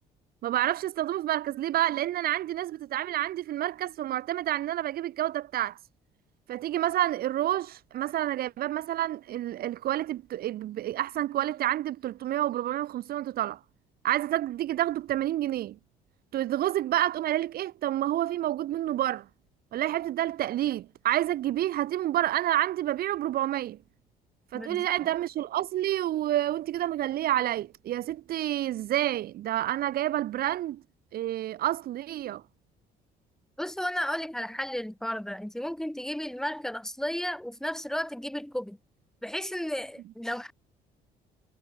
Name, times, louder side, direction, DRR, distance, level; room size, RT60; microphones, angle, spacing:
voice 1, 0.4-5.8 6.5-13.6 14.0-15.8 16.3-19.3 19.7-23.8 24.5-30.8 31.1-32.4, right 13 dB, 65° right, 1.0 m, -29 dB
voice 2, 24.5-24.9 33.6-38.8 39.2-40.5, equal, 5° left, 2.8 m, -33 dB
cardioid pair, 110°, 17 cm